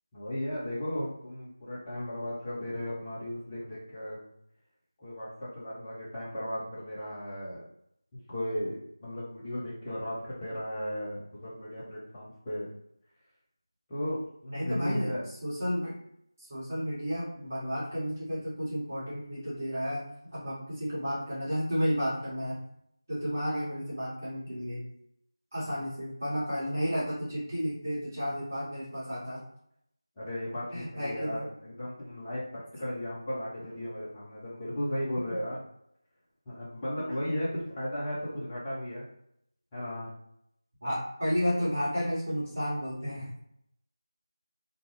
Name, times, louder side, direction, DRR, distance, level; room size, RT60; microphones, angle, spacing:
voice 1, 0.1-4.2 5.0-7.6 8.1-12.7 13.9-15.2 30.2-35.6 36.5-39.1 39.7-40.1, equal, 10° left, -9 dB, 0.5 m, -35 dB
voice 2, 14.5-15.1 15.4-15.9 16.4-20.0 20.3-22.5 23.1-24.8 25.5-29.4 30.7-31.5 37.3-37.4 40.8-43.3, equal, 30° right, -10 dB, 1.1 m, -32 dB
2.5 x 2.2 x 3.0 m, 0.74 s
figure-of-eight pair, 170°, 2 cm